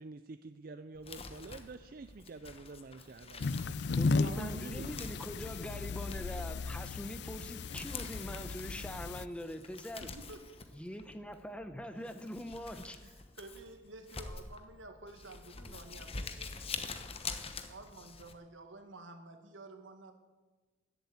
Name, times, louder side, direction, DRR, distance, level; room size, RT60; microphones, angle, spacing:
voice 1, 0.0-3.9 4.3-4.9, right 3 dB, 50° right, 11 dB, 0.4 m, -47 dB
Crumpling crinkling, 0.9-18.3, left 4 dB, 30° left, 1.0 m, -47 dB
sound 1, 3.4-9.2, left 3 dB, 60° left, 0.4 m, -35 dB
voice 2, 4.0-10.1 10.7-13.0, equal, 5° left, 9 dB, 0.8 m, -43 dB
voice 3, 10.0-10.7 13.0-17.0 17.7-20.1, right 2 dB, 90° right, 6 dB, 1.8 m, -51 dB
14.0 x 8.0 x 9.6 m, 1.3 s
head